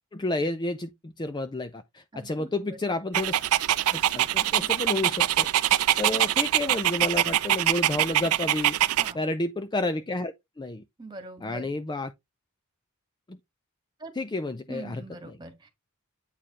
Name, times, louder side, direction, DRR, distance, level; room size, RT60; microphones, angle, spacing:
voice 1, 0.1-3.3 3.9-8.8 9.1-10.8 11.4-12.1 13.3-13.4 14.2-15.0, left 2 dB, 20° left, 0.4 m, -31 dB
voice 2, 2.1-2.5 8.9-9.2 11.0-11.7 14.0-14.1 14.7-15.7, right 2 dB, 20° right, 1.7 m, -42 dB
Dog, 3.1-9.1, right 12 dB, 75° right, 0.5 m, -24 dB
8.6 x 4.7 x 3.0 m
head